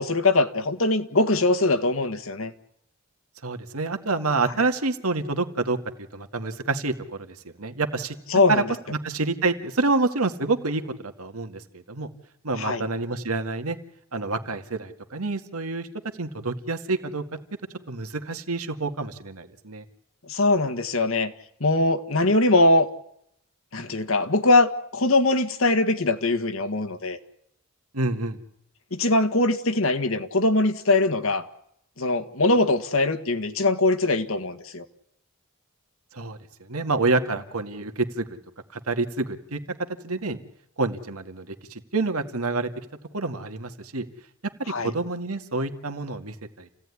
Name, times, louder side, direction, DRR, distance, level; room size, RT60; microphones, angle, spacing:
voice 1, 0.0-2.5 8.3-8.6 12.6-12.8 20.3-21.3 21.6-22.9 23.7-27.2 28.9-31.5 32.0-34.8 44.7-44.9, left 2 dB, 70° left, 9 dB, 1.8 m, -22 dB
voice 2, 3.4-5.8 6.1-8.2 8.5-12.1 12.4-13.8 14.1-15.9 16.2-17.2 17.9-19.8 27.9-28.4 36.1-38.3 38.7-39.6 40.0-40.4 40.8-42.7 43.1-44.1 44.6-46.7, right 3 dB, 85° right, 7 dB, 2.1 m, -28 dB
29.0 x 17.0 x 9.8 m, 0.76 s
head